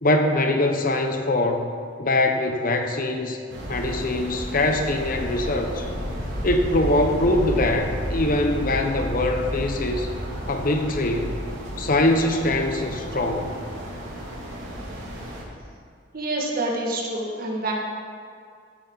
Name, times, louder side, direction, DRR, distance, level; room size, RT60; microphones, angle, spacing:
voice 1, 0.0-1.7 2.0-3.4 3.7-5.9 6.4-10.1 10.5-11.3 11.8-13.5, left 1 dB, 45° left, 5 dB, 0.9 m, -23 dB
sound 1, 3.5-15.4, equal, 85° right, 2.8 m, -32 dB
voice 2, 16.1-17.8, right 2 dB, 50° right, -2 dB, 1.9 m, -27 dB
16.0 x 8.7 x 4.0 m, 2.3 s
head